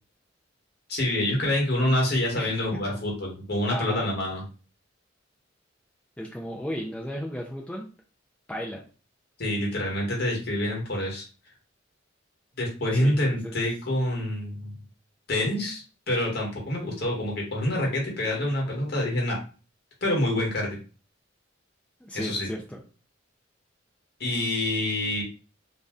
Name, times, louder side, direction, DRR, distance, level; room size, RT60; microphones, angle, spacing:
voice 1, 0.9-4.4 9.4-11.2 12.6-14.8 15.3-19.4 20.0-20.8 22.1-22.5 24.2-25.2, left 1 dB, 55° left, -1 dB, 1.1 m, -27 dB
voice 2, 3.7-4.1 6.2-7.9 8.5-8.8 12.9-13.5 22.0-22.8, equal, 5° left, -2 dB, 0.4 m, -35 dB
2.6 x 2.1 x 3.5 m, 0.35 s
head